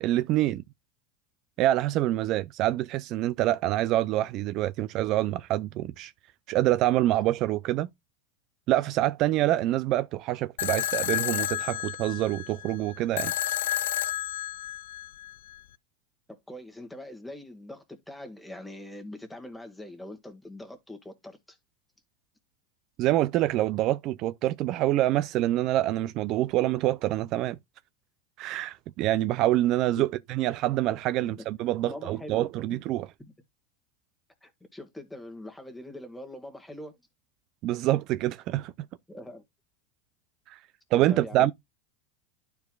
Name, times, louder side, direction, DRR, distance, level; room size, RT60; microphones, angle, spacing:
voice 1, 0.0-0.6 1.6-6.1 6.5-7.9 8.7-13.3 23.0-27.6 28.4-33.1 37.6-38.7 40.5-40.6 40.9-41.5, right 14 dB, 50° right, 0.4 m, -26 dB
sound 1, 10.6-15.6, left 13 dB, 90° left, 0.3 m, -31 dB
voice 2, 16.3-21.6 30.0-30.1 31.2-31.3 31.8-32.8 34.4-37.0 39.1-39.4 41.1-41.5, left 1 dB, 5° left, 1.7 m, -43 dB
12.0 x 4.6 x 2.2 m
supercardioid pair, 135°, 0 cm